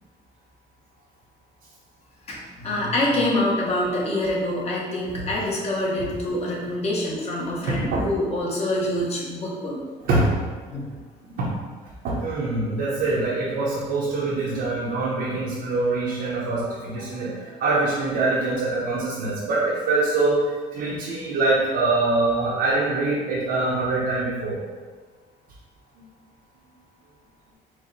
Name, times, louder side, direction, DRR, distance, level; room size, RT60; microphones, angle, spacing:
voice 1, 2.3-9.8 10.7-10.9, left 1 dB, 40° left, -4 dB, 1.2 m, -26 dB
voice 2, 7.7-8.1 10.0-10.4 11.2-11.5 12.0-24.6, right 2 dB, 75° right, -7 dB, 0.9 m, -24 dB
4.6 x 2.2 x 4.0 m, 1.4 s
cardioid pair, 110°, 17 cm